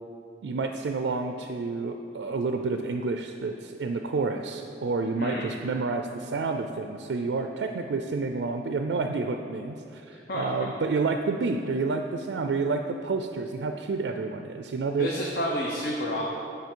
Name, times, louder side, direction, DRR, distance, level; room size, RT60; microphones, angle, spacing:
voice 1, 0.4-15.1, right 4 dB, 80° right, 5 dB, 0.4 m, -29 dB
voice 2, 5.2-5.5 10.1-10.7 15.0-16.2, equal, 60° left, -3 dB, 0.8 m, -30 dB
9.3 x 5.1 x 4.5 m, 2.6 s
head